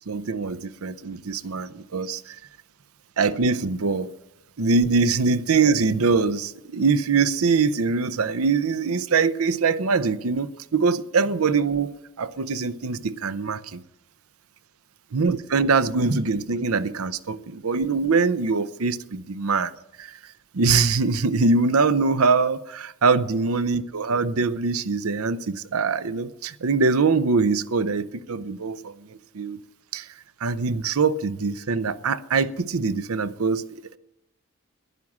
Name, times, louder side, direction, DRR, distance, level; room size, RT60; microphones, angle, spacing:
voice 1, 0.1-2.4 3.2-4.1 4.6-13.8 15.1-19.7 20.0-20.1 20.5-28.9 29.3-29.6 29.9-30.1 30.4-34.0, right 4 dB, 90° right, 0.7 m, -23 dB
11.0 x 11.0 x 7.3 m
head